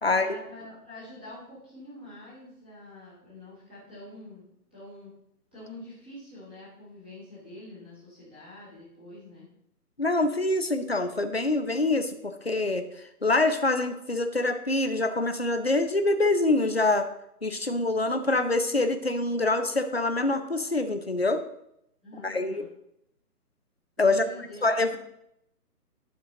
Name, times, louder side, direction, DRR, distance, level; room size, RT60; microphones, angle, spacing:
voice 1, 0.1-5.1 5.5-9.5 22.0-22.7 24.0-25.0, left 1 dB, 5° right, -11 dB, 1.4 m, -46 dB
voice 2, 10.0-12.9 13.2-17.1 17.4-21.4 22.2-22.6 24.0-24.2 24.6-25.0, left 2 dB, 40° left, 7 dB, 0.5 m, -25 dB
10.5 x 6.7 x 3.8 m, 0.78 s
hypercardioid pair, 180°, 48 cm